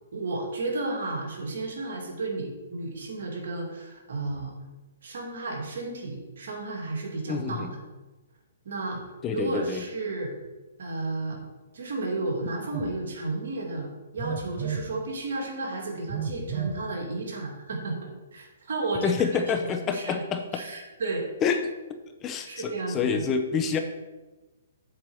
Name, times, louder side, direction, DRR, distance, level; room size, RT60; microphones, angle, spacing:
voice 1, 0.1-4.5 5.0-7.8 8.6-9.0 9.3-10.3 10.8-11.4 11.7-20.2 20.5-21.2 22.5-23.3, right 2 dB, 70° right, -1 dB, 2.6 m, -33 dB
voice 2, 7.3-7.7 9.2-9.8 19.0-20.6 21.4-21.6 22.2-23.8, left 6 dB, 20° left, 6 dB, 0.8 m, -27 dB
Telephone, 12.7-12.9 14.2-14.9 16.1-16.8, right 6 dB, 35° right, 0.9 m, -32 dB
7.7 x 4.7 x 7.1 m, 1.2 s
hypercardioid pair, 140°, 0 cm